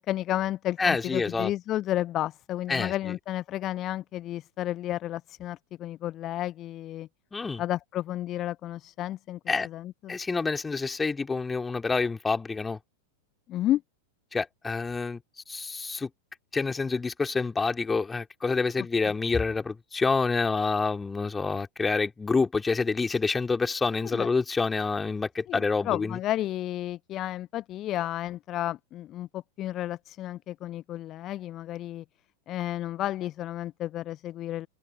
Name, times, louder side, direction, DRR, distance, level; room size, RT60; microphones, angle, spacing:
voice 1, 0.0-7.1 7.6-10.1 13.5-13.8 24.0-24.3 25.5-32.0 32.5-34.7, left 13 dB, 35° left, 0.6 m, -32 dB
voice 2, 0.8-1.5 2.7-2.9 7.3-7.6 9.5-9.7 10.1-12.8 14.3-15.2 15.5-16.1 16.5-26.2, left 4 dB, 15° left, 3.2 m, -27 dB
open air
figure-of-eight pair, 90°, 0 cm